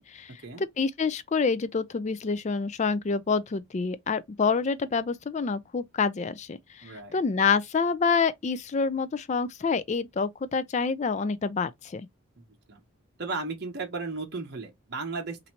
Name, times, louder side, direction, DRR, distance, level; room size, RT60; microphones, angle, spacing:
voice 1, 0.0-12.1, left 5 dB, 30° left, 0.3 m, -27 dB
voice 2, 6.8-7.2 12.7-12.8 13.2-15.5, right 3 dB, 50° right, 0.8 m, -35 dB
2.8 x 2.6 x 4.3 m
head